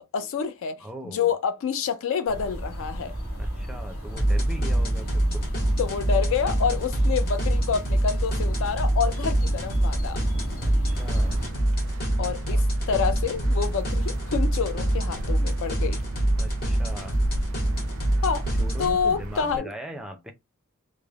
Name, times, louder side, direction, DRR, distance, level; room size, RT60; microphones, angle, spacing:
voice 1, 0.0-0.8 1.0-3.1 5.8-10.2 12.2-16.0 18.2-18.5 18.8-19.7, left 6 dB, 65° left, 0.4 m, -28 dB
voice 2, 0.8-1.3 3.4-5.5 10.6-11.4 12.5-12.6 16.4-17.2 18.6-20.3, right 1 dB, 5° right, 0.4 m, -40 dB
sound 1, 2.3-11.5, equal, 85° left, 0.9 m, -33 dB
sound 2, 4.2-18.9, right 1 dB, 45° left, 1.0 m, -25 dB
sound 3, 10.9-19.6, right 1 dB, 75° right, 0.4 m, -38 dB
3.1 x 2.0 x 2.3 m
head